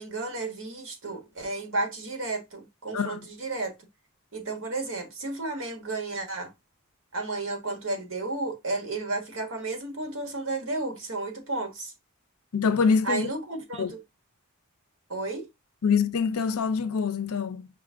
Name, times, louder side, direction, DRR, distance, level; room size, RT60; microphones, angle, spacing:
voice 1, 0.0-3.8 4.3-6.5 7.1-11.9 13.0-14.0 15.1-15.5, right 2 dB, 60° right, 1.3 m, -32 dB
voice 2, 2.9-3.3 12.5-13.3 13.8-13.9 15.8-17.7, left 5 dB, 80° left, 0.5 m, -25 dB
5.2 x 2.5 x 3.5 m
head